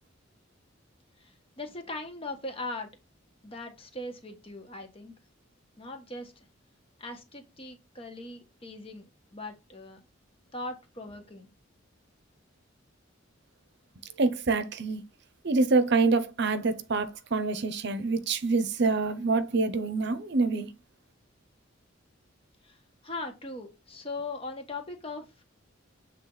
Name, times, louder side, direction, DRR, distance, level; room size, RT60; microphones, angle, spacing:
voice 1, 1.2-2.9 3.4-5.2 5.8-6.5 7.0-10.0 10.5-11.5 22.6-22.8 23.0-25.3, left 2 dB, 30° left, 1.4 m, -40 dB
voice 2, 14.2-15.0 15.4-20.7, right 3 dB, 60° right, 0.7 m, -26 dB
7.5 x 3.5 x 4.0 m
head